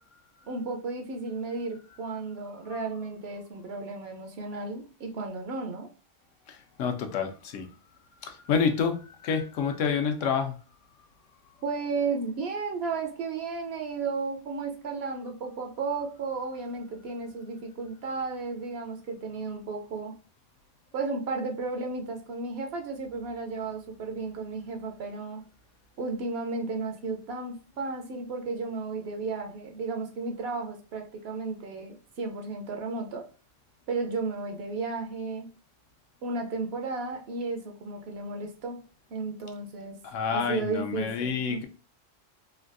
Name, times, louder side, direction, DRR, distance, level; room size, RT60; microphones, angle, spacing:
voice 1, 0.5-5.9 11.6-20.1 20.9-25.4 26.0-33.2 33.9-35.5 36.2-38.8 39.1-40.0 40.3-41.7, right 3 dB, 65° right, 0.7 m, -33 dB
voice 2, 6.5-7.7 8.2-10.6 40.0-41.7, left 6 dB, 80° left, 0.9 m, -28 dB
3.3 x 2.2 x 2.4 m
omnidirectional pair, 1.3 m